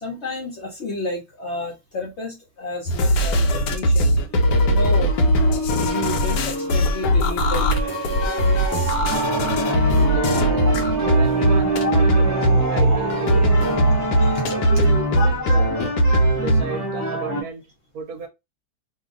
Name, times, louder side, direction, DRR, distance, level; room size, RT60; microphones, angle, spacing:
voice 1, 0.0-4.1 4.7-5.3 5.7-7.9 11.8-11.9 13.4-13.5 13.8-13.9 14.2-14.4 15.2-15.3, left 2 dB, 55° left, 0.8 m, -31 dB
sound 1, 2.9-16.6, equal, 80° left, 1.2 m, -19 dB
sound 2, 4.3-14.8, right 4 dB, 85° right, 0.4 m, -28 dB
sound 3, 9.1-17.4, equal, 20° left, 0.5 m, -27 dB
voice 2, 9.6-10.7 11.0-13.7 14.4-15.7 16.3-17.6 17.9-18.3, right 4 dB, 65° right, 1.0 m, -34 dB
2.8 x 2.4 x 3.6 m
omnidirectional pair, 1.8 m